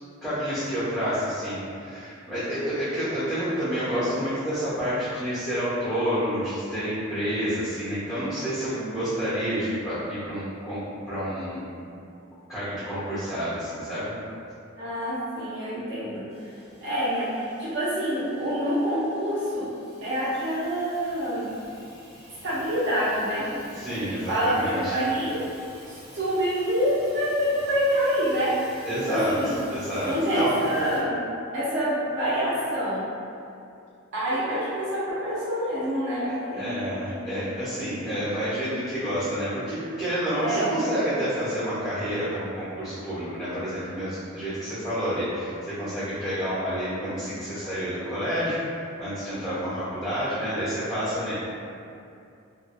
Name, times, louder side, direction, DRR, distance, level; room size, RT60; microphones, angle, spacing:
voice 1, 0.2-11.6 12.5-14.1 23.7-25.0 28.8-29.3 29.7-30.5 36.5-51.3, equal, 5° left, -17 dB, 1.1 m, -29 dB
voice 2, 14.8-16.3 16.8-19.7 20.0-21.5 22.4-23.5 24.3-25.4 25.9-28.6 29.1-29.5 30.1-31.2 31.5-33.0 34.1-36.8 37.1-37.2 40.4-40.7, equal, 60° right, -10 dB, 0.7 m, -26 dB
Hiss / Toilet flush / Trickle dribble, 16.3-31.0, equal, 10° right, 0.8 m, -49 dB
2.7 x 2.3 x 2.2 m, 2.6 s
head